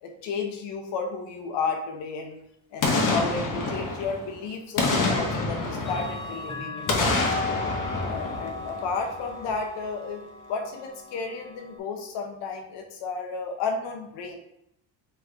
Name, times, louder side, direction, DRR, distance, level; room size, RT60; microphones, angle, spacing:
voice 1, 0.0-2.4 2.7-7.3 7.9-10.2 10.5-14.3, left 4 dB, 80° left, 3 dB, 0.9 m, -32 dB
Boom, 2.8-4.3 4.8-6.4 6.9-9.1 9.5-9.6, left 3 dB, 50° left, 1.0 m, -27 dB
Clock, 3.7-3.8 5.0-11.8, left 3 dB, 10° left, 0.8 m, -37 dB
3.3 x 3.2 x 3.7 m, 0.78 s
cardioid pair, 80°, 41 cm